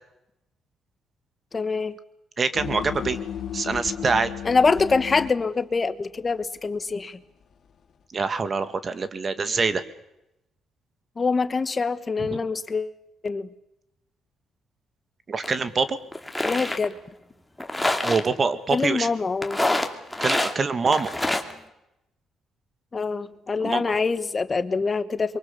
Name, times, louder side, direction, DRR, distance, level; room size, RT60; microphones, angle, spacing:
voice 1, 1.5-1.9 4.4-7.2 11.2-13.0 13.2-13.5 16.4-16.9 18.7-19.6 22.9-25.4, left 4 dB, 30° left, 14 dB, 1.1 m, -25 dB
voice 2, 2.4-3.2 3.5-4.3 8.1-9.8 12.2-12.4 15.3-16.0 18.0-19.1 20.2-21.2 23.6-23.9, right 4 dB, 40° right, 12 dB, 2.0 m, -25 dB
sound 1, 2.5-5.3, left 9 dB, 60° left, 3.2 m, -33 dB
sound 2, 15.4-15.5 16.1-16.8 17.6-18.3 19.4-20.5 20.8-21.5, left 1 dB, 5° left, 2.7 m, -25 dB
23.5 x 23.5 x 7.0 m, 0.88 s
cardioid pair, 90°, 0 cm